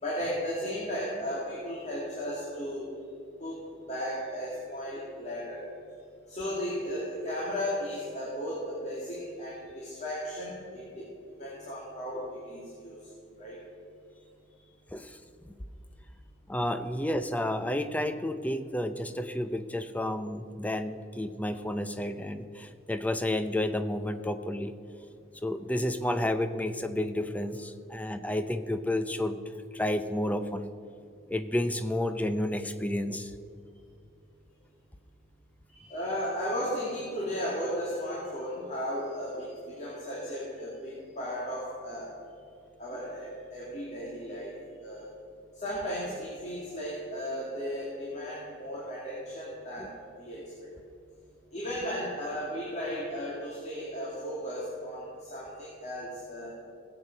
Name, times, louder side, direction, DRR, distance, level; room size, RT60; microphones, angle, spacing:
voice 1, 0.0-2.9 3.4-5.7 6.3-11.1 11.4-13.0 13.4-13.6 35.7-42.1 42.8-44.5 44.8-45.1 45.5-50.7 51.5-56.5, equal, 35° left, -6 dB, 2.3 m, -35 dB
voice 2, 14.9-15.2 16.5-24.7 25.4-29.4 29.7-30.7 31.3-33.3 49.8-49.9, left 1 dB, 5° left, 9 dB, 0.5 m, -31 dB
18.0 x 8.1 x 5.2 m, 2.7 s
head